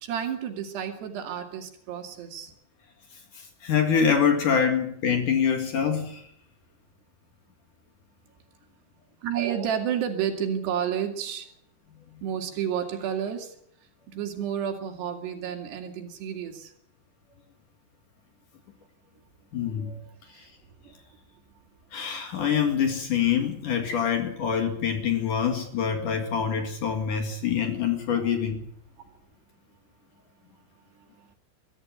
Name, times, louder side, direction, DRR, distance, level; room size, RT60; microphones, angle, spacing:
voice 1, 0.0-2.5 9.2-11.5 12.2-13.5 14.1-16.7, right 8 dB, 80° right, 4 dB, 4.5 m, -30 dB
voice 2, 3.3-6.2 19.5-20.0 21.9-28.7, left 7 dB, 55° left, 5 dB, 3.3 m, -25 dB
22.0 x 13.5 x 8.8 m, 0.68 s
omnidirectional pair, 4.7 m